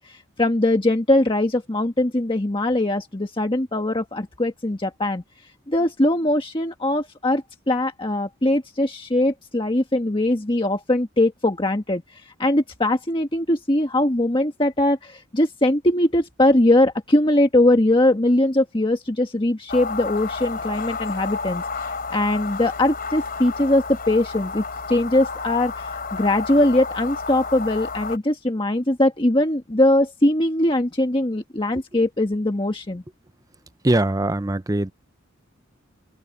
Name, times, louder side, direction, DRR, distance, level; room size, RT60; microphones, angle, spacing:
voice 1, 0.0-5.2 5.7-33.0, left 1 dB, 25° left, 1.5 m, -21 dB
sound 1, 19.7-28.2, left 4 dB, 45° left, 3.8 m, -31 dB
voice 2, 33.8-34.9, right 1 dB, 20° right, 0.7 m, -21 dB
head